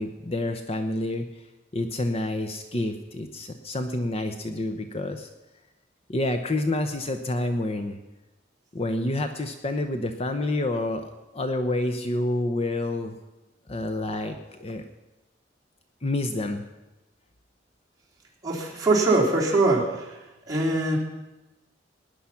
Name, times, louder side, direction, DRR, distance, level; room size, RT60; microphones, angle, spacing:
voice 1, 0.0-1.4 1.7-5.3 6.1-8.0 8.7-13.1 13.7-14.8 16.0-16.6, left 1 dB, 35° left, 7 dB, 0.8 m, -28 dB
voice 2, 18.4-20.1 20.5-21.0, right 2 dB, 20° right, -5 dB, 3.6 m, -22 dB
19.0 x 10.0 x 5.8 m, 1.0 s
head